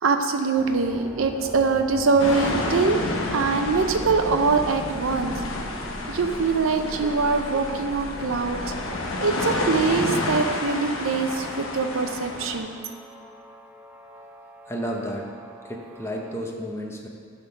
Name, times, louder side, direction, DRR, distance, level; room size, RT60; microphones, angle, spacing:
voice 1, 0.0-3.0 3.3-5.3 6.1-8.6 9.2-12.8, right 4 dB, 80° right, 6 dB, 0.6 m, -23 dB
sound 1, 0.5-16.3, equal, 5° right, 0.5 m, -41 dB
sound 2, 2.2-12.6, left 2 dB, 85° left, 0.9 m, -30 dB
voice 2, 14.7-15.3 15.6-17.1, equal, 15° left, 0 dB, 0.8 m, -32 dB
10.0 x 3.7 x 5.8 m, 2.1 s
head